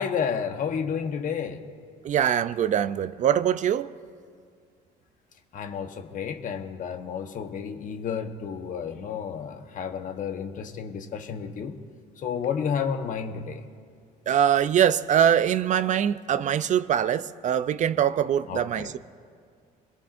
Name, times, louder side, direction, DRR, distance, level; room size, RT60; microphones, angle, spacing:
voice 1, 0.0-1.7 5.5-11.8 12.2-13.7 18.5-18.9, left 7 dB, 50° left, 1.1 m, -31 dB
voice 2, 2.0-3.9 14.3-19.0, right 9 dB, 45° right, 0.4 m, -23 dB
25.5 x 21.0 x 2.6 m
cardioid pair, 110°, 17 cm